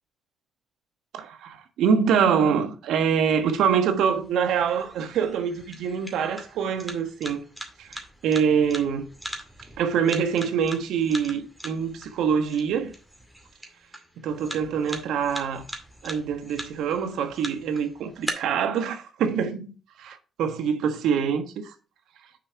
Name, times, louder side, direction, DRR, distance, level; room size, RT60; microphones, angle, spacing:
voice 1, 1.1-7.4 7.8-9.1 9.8-12.9 14.2-15.6 16.0-19.7 20.0-21.7, right 7 dB, 80° right, 1.3 m, -25 dB
sound 1, 3.3-18.3, right 1 dB, 5° right, 2.2 m, -41 dB
6.6 x 5.0 x 5.7 m
cardioid pair, 90°, 0 cm